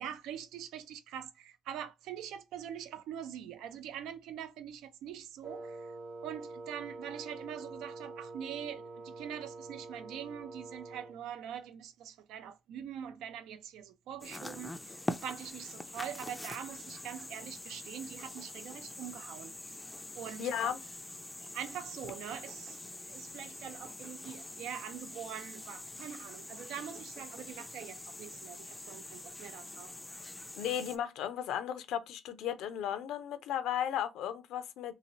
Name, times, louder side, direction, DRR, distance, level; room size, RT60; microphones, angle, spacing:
voice 1, 0.0-5.9 6.2-19.5 20.2-20.7 21.4-29.9, right 9 dB, 85° right, 0.4 m, -44 dB
Wind instrument woodwind instrument, 5.4-11.2, right 3 dB, 70° right, 0.8 m, -46 dB
sound 1, 14.2-31.0, left 2 dB, 15° left, 0.3 m, -45 dB
voice 2, 20.4-20.8 30.6-35.0, left 9 dB, 80° left, 0.5 m, -35 dB
2.8 x 2.8 x 2.9 m
cardioid pair, 100°, 0 cm